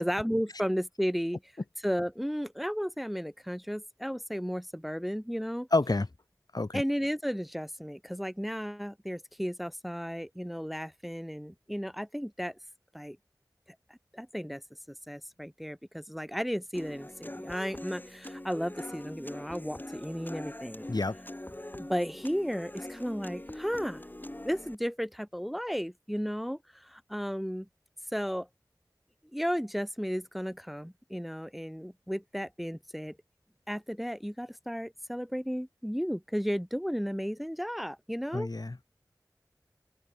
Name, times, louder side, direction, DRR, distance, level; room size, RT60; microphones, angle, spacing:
voice 1, 0.0-1.4 1.8-5.7 6.7-12.6 12.9-13.2 14.1-14.6 14.9-20.9 21.8-24.0 24.4-27.7 28.1-28.5 29.3-33.2 33.7-38.5, equal, ahead, 1.5 m, -34 dB
voice 2, 5.7-6.1 6.5-6.8 20.9-21.2 38.3-38.8, left 2 dB, 60° left, 2.9 m, -28 dB
Human voice / Acoustic guitar, 16.7-24.8, left 1 dB, 25° left, 4.7 m, -43 dB
open air
wide cardioid pair, 50°, 7 cm